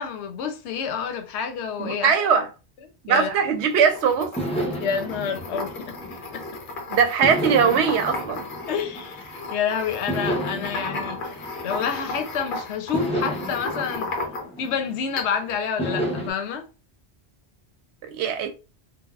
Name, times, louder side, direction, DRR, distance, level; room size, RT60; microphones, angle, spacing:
voice 1, 0.0-2.2 3.1-3.3 4.8-6.0 6.3-6.4 8.7-14.1 14.6-16.7, left 7 dB, 85° left, 0.9 m, -28 dB
voice 2, 1.8-2.5 3.1-4.4 6.9-8.5 18.0-18.5, right 6 dB, 80° right, 0.9 m, -21 dB
sound 1, 3.4-3.8 4.4-6.6 7.2-9.5 10.1-12.3 12.9-15.2 15.8-16.3, right 1 dB, 5° left, 0.6 m, -31 dB
sound 2, 3.7-14.7 15.2-15.6, left 2 dB, 55° left, 0.8 m, -34 dB
3.3 x 2.2 x 2.3 m
omnidirectional pair, 1.1 m